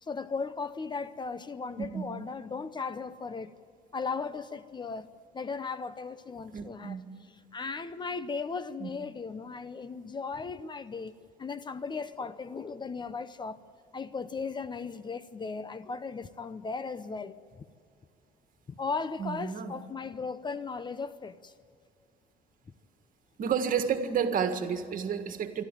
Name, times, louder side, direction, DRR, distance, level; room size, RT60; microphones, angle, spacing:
voice 1, 0.0-3.5 3.9-7.0 7.5-11.1 11.4-13.6 13.9-17.6 18.8-21.5, left 4 dB, 25° left, 14 dB, 0.7 m, -37 dB
voice 2, 6.5-7.0 8.8-8.9 19.2-19.7 23.4-25.6, right 7 dB, 55° right, 8 dB, 1.8 m, -30 dB
26.0 x 12.0 x 9.2 m, 2.1 s
cardioid pair, 110°, 17 cm